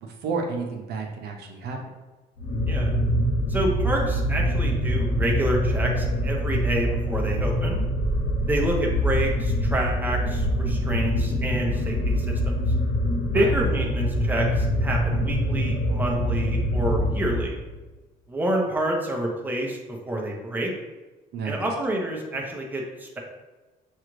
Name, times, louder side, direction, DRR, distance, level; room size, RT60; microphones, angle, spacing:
voice 1, 0.0-1.8 13.3-13.5 21.3-21.6, right 4 dB, 70° right, 1 dB, 0.8 m, -30 dB
sound 1, 2.4-17.7, equal, 55° left, 1.0 m, -24 dB
voice 2, 3.5-7.8 8.5-12.5 13.3-17.6 18.3-19.8 20.1-20.7 21.4-23.2, right 1 dB, 10° right, -1 dB, 0.8 m, -28 dB
6.3 x 2.5 x 3.1 m, 1.2 s
cardioid pair, 110°, 17 cm